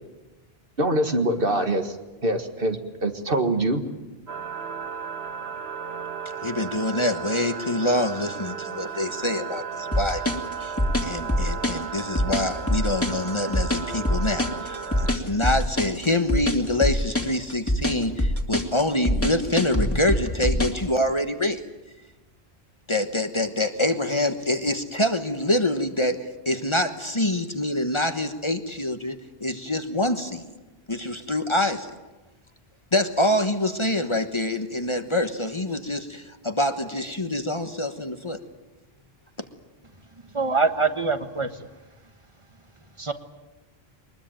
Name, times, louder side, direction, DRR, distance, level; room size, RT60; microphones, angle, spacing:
voice 1, 0.8-2.0 2.2-3.8, right 1 dB, 60° right, 6 dB, 2.1 m, -24 dB
sound 1, 4.3-15.2, right 6 dB, 75° right, 1.8 m, -35 dB
voice 2, 6.4-10.2 10.6-10.7 11.0-21.6 22.9-26.2 26.4-30.5 30.9-31.9 32.9-38.4, left 1 dB, 30° left, 7 dB, 1.3 m, -25 dB
sound 2, 9.9-20.8, left 1 dB, 15° left, 2.4 m, -24 dB
voice 3, 40.3-41.5 43.0-43.1, right 4 dB, 30° right, 8 dB, 1.4 m, -23 dB
23.0 x 21.0 x 9.0 m, 1.1 s
omnidirectional pair, 1.0 m